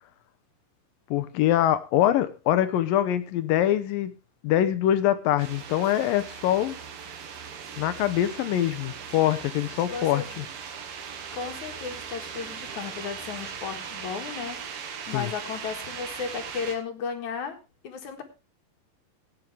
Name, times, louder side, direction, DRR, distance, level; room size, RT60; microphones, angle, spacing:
voice 1, 1.1-4.1 4.4-6.8 7.8-10.5 15.1-15.3, left 12 dB, 75° left, 13 dB, 2.4 m, -24 dB
sound 1, 5.4-16.8, right 7 dB, 70° right, 3.4 m, -39 dB
voice 2, 9.9-10.2 11.3-14.6 15.1-17.6 17.8-18.2, left 6 dB, 55° left, 5 dB, 2.8 m, -34 dB
17.5 x 9.3 x 3.4 m, 0.28 s
omnidirectional pair, 4.4 m